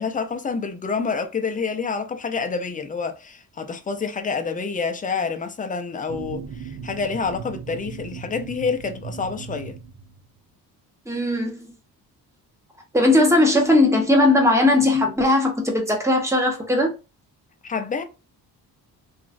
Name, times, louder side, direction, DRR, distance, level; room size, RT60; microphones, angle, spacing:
voice 1, 0.0-9.8 17.6-18.0, left 5 dB, 20° left, 0.5 m, -28 dB
sound 1, 6.1-10.4, right 6 dB, 75° right, 0.9 m, -37 dB
voice 2, 11.1-11.7 12.9-16.9, left 1 dB, 5° right, 0.9 m, -18 dB
3.0 x 2.4 x 2.5 m
cardioid pair, 100°, 38 cm